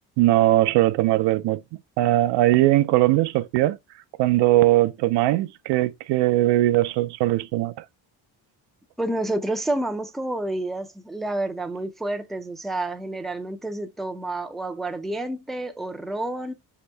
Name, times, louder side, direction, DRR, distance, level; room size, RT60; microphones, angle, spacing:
voice 1, 0.2-1.6 2.0-3.8 4.2-7.8, right 16 dB, 85° right, 0.5 m, -20 dB
voice 2, 9.0-16.5, right 1 dB, ahead, 0.3 m, -29 dB
5.2 x 2.9 x 3.3 m
cardioid pair, 125°, 41 cm